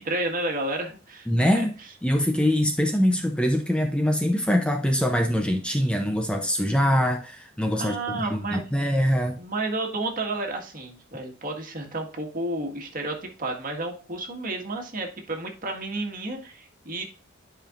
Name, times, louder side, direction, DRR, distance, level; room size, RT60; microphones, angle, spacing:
voice 1, 0.0-1.7 7.8-8.7 9.4-17.1, right 2 dB, 45° right, 2 dB, 1.7 m, -31 dB
voice 2, 1.3-1.7 2.0-9.4, equal, 5° left, 4 dB, 0.6 m, -23 dB
10.0 x 5.1 x 2.5 m, 0.38 s
head